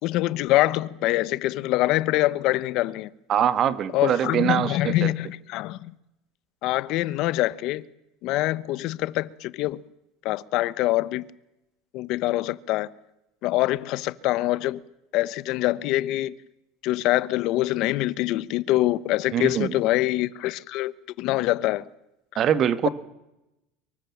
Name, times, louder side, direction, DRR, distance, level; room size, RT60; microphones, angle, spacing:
voice 1, 0.0-3.1 3.9-5.9 6.6-7.8 8.2-9.8 10.2-11.3 11.9-12.9 13.4-14.8 15.1-16.4 16.8-21.9 22.8-22.9, left 17 dB, 55° left, 1.1 m, -24 dB
voice 2, 3.3-5.1 19.3-19.7 22.3-22.9, right 9 dB, 35° right, 1.8 m, -23 dB
25.0 x 23.5 x 7.4 m
supercardioid pair, 140°, 0 cm